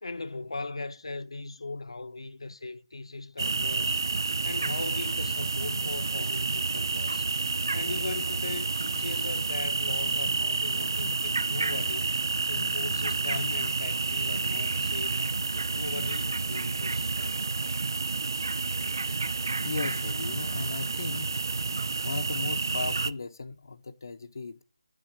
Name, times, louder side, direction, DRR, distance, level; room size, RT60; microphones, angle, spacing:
voice 1, 0.0-4.0 4.2-7.3 7.7-12.1 12.5-15.2 15.6-17.4, left 3 dB, 70° left, 1.0 m, -39 dB
sound 1, 3.4-23.1, right 3 dB, 45° right, 0.5 m, -29 dB
voice 2, 19.6-21.3 22.0-24.6, left 3 dB, 40° left, 0.7 m, -36 dB
9.8 x 6.9 x 8.2 m
figure-of-eight pair, 180°, 3 cm